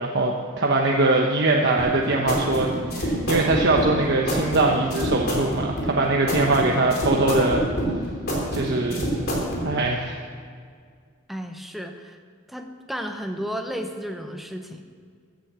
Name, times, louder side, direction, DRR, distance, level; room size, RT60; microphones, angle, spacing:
voice 1, 0.0-7.6 8.5-9.2 9.6-10.2, right 2 dB, 55° right, 0 dB, 1.1 m, -22 dB
sound 1, 1.8-9.6, right 1 dB, 50° left, 3.5 m, -27 dB
voice 2, 11.3-12.2 12.5-14.8, equal, ahead, 4 dB, 0.9 m, -33 dB
15.0 x 9.1 x 7.4 m, 2.1 s
head